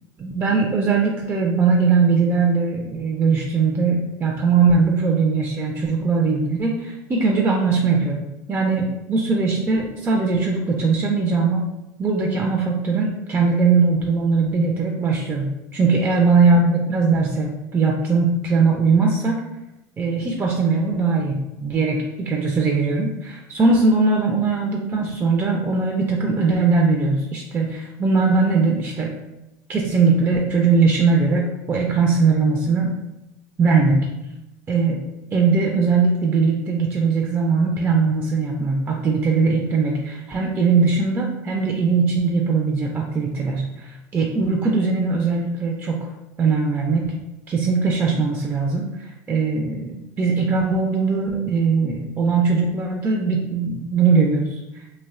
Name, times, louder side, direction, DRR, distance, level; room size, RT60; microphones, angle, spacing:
voice 1, 0.2-11.7 12.0-19.4 20.0-29.1 29.7-33.0 33.6-34.1 34.7-35.0 35.3-46.1 46.4-47.2 47.5-48.9 49.3-54.6, right 4 dB, 25° right, 0 dB, 0.3 m, -20 dB
2.5 x 2.1 x 2.4 m, 0.94 s
hypercardioid pair, 85°, 9 cm